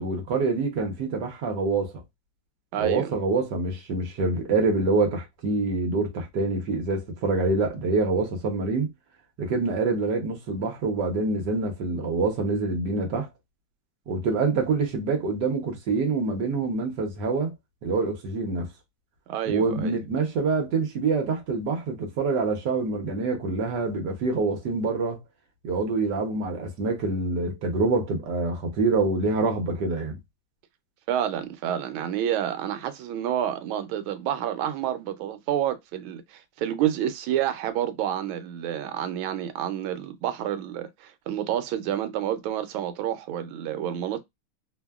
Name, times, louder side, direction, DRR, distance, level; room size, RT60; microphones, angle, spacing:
voice 1, 0.0-1.9 2.8-8.9 9.4-13.3 14.1-17.5 17.8-18.7 19.5-25.2 25.6-30.2, right 3 dB, 65° right, 1.3 m, -26 dB
voice 2, 2.7-3.1 19.3-19.9 31.1-44.2, right 10 dB, 90° right, 1.4 m, -29 dB
3.4 x 2.0 x 2.3 m
omnidirectional pair, 2.2 m